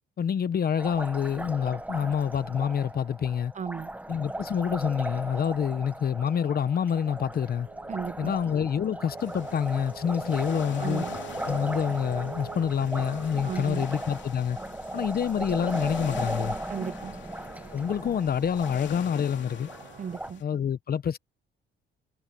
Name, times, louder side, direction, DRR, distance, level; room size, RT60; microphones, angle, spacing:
voice 1, 0.2-3.5 4.1-7.7 8.2-11.0 11.4-14.6 14.9-16.6 17.7-19.7 20.4-21.2, left 8 dB, 50° left, 1.1 m, -27 dB
Liquid, 0.8-20.3, right 1 dB, 5° right, 1.4 m, -37 dB
voice 2, 3.6-3.9 7.9-8.3 10.8-11.2 13.4-13.9 16.7-17.2 20.0-20.4, right 7 dB, 40° right, 0.8 m, -35 dB
sound 1, 5.5-20.2, right 11 dB, 70° right, 7.3 m, -49 dB
sound 2, 9.2-20.4, left 10 dB, 70° left, 2.6 m, -46 dB
cardioid pair, 90°, 20 cm